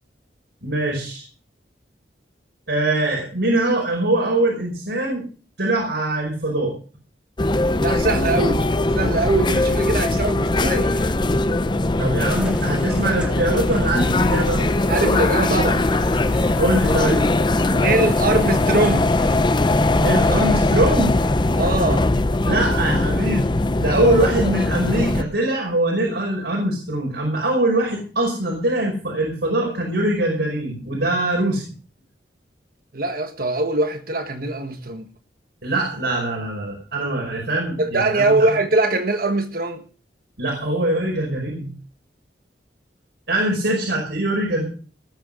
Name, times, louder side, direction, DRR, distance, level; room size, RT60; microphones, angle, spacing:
voice 1, 0.6-1.2 2.7-5.3 5.6-6.7 12.0-14.6 16.6-17.3 20.0-21.2 22.4-31.6 35.6-38.3 40.4-41.7 43.3-44.7, right 1 dB, 85° right, 5.3 m, -22 dB
sound 1, 7.4-25.2, left 2 dB, 25° left, 0.6 m, -20 dB
voice 2, 7.8-11.2 14.9-15.9 17.7-19.1 21.6-22.1 32.9-35.1 37.8-39.8, right 2 dB, 55° right, 1.5 m, -22 dB
sound 2, 12.3-19.4, equal, 5° right, 1.9 m, -36 dB
19.0 x 7.8 x 6.4 m
head